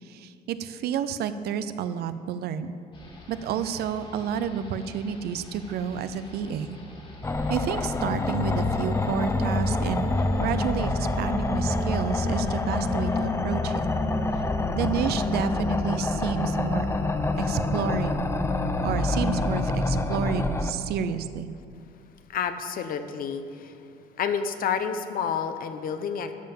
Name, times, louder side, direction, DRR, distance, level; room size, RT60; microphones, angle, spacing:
voice 1, 0.0-2.7 3.3-6.8 7.5-13.8 14.7-16.9 17.4-18.3 18.8-21.5, right 7 dB, 70° right, 12 dB, 0.6 m, -30 dB
sound 1, 2.9-13.3, left 4 dB, 30° left, 2.0 m, -41 dB
sound 2, 7.2-20.7, left 2 dB, 15° left, 0.6 m, -26 dB
voice 2, 22.3-23.8 24.2-26.3, left 7 dB, 55° left, 9 dB, 0.8 m, -29 dB
12.5 x 5.7 x 7.2 m, 2.5 s
cardioid pair, 110°, 17 cm